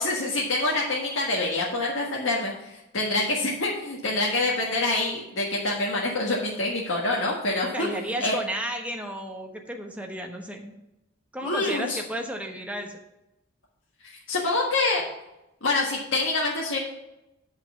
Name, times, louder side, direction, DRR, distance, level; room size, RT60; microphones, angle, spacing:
voice 1, 0.0-2.5 2.9-7.9 8.2-8.4 11.4-12.0 14.3-15.0 15.6-16.8, left 2 dB, 75° left, -3 dB, 1.6 m, -26 dB
voice 2, 7.7-10.7 11.3-13.0, right 1 dB, 5° right, 3 dB, 1.0 m, -33 dB
7.8 x 5.6 x 6.9 m, 0.91 s
head